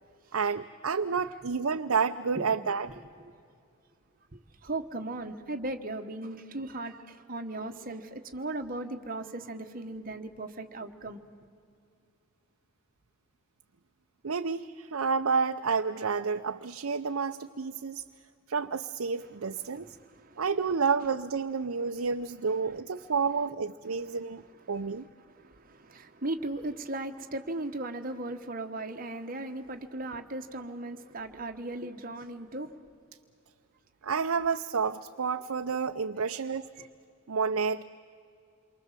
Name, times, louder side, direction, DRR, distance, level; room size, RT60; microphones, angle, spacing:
voice 1, 0.3-2.9 14.2-18.0 18.5-19.9 20.4-25.1 34.0-36.7 37.3-37.8, right 5 dB, 80° right, 6 dB, 0.7 m, -30 dB
voice 2, 4.3-11.2 19.6-20.4 22.6-23.1 24.0-24.2 24.6-32.8 36.3-36.4 36.8-36.9, right 2 dB, 40° right, 5 dB, 1.4 m, -38 dB
28.0 x 24.0 x 7.5 m, 2.4 s
head